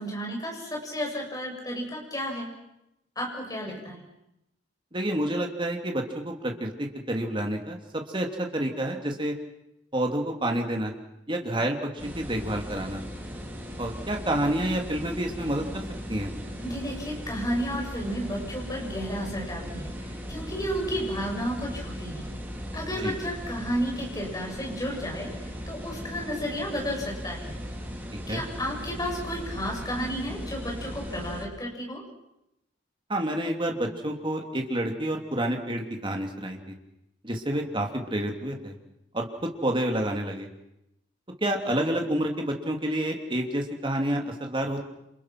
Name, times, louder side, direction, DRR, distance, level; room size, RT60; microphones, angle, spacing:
voice 1, 0.0-2.5 3.2-4.1 16.6-22.3 22.7-27.5 28.3-32.0, equal, 20° left, 0 dB, 7.0 m, -32 dB
voice 2, 4.9-6.7 7.1-7.8 8.1-9.3 9.9-10.9 11.3-11.8 12.1-13.0 13.8-15.8 16.1-16.3 23.0-23.1 28.3-28.4 33.1-36.6 37.2-38.7 39.1-40.5 41.4-44.9, right 1 dB, 25° right, 2 dB, 3.0 m, -28 dB
sound 1, 12.0-31.5, equal, 10° right, 3.3 m, -38 dB
28.5 x 27.5 x 6.1 m, 0.87 s
head